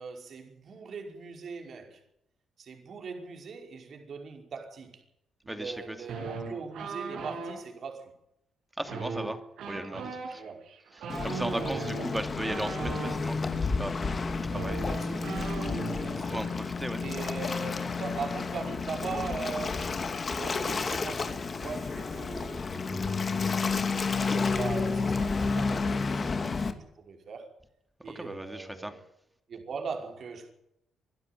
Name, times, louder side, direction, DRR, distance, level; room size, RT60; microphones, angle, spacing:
voice 1, 0.0-2.0 2.6-5.0 5.4-8.1 10.3-10.6 11.6-12.1 14.8-16.5 17.0-23.9 24.3-27.5 28.0-29.0 29.5-30.5, right 5 dB, 55° right, 5.3 m, -40 dB
voice 2, 5.5-6.0 8.8-9.4 9.7-10.4 11.2-14.9 16.1-17.0 28.1-28.9, right 1 dB, 10° right, 2.7 m, -37 dB
sound 1, 6.1-7.6 8.8-13.2 14.1-14.2 14.4-16.1 16.4-16.6 16.9-17.4, right 4 dB, 75° right, 6.7 m, -38 dB
Waves surf, 11.1-26.7, left 4 dB, 35° left, 2.4 m, -31 dB
24.0 x 12.5 x 9.4 m
cardioid pair, 90°, 0 cm